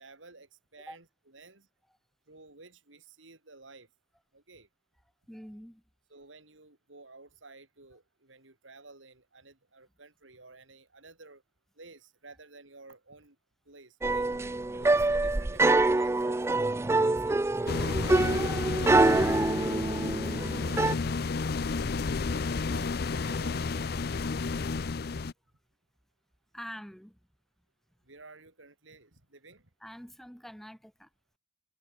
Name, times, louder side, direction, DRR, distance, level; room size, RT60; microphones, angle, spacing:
voice 1, 0.0-1.7 2.3-3.9 4.3-4.7 6.1-11.4 11.8-13.4 13.6-14.3 14.7-20.0 20.3-21.2 22.1-24.0 28.0-29.7, right 3 dB, 85° right, 4.5 m, -53 dB
voice 2, 5.3-5.8 20.3-22.2 26.5-27.2 29.8-31.1, equal, ahead, 4.6 m, -47 dB
sound 1, 14.0-20.9, right 2 dB, 15° right, 0.3 m, -25 dB
sound 2, 17.7-25.3, left 4 dB, 55° left, 0.5 m, -31 dB
head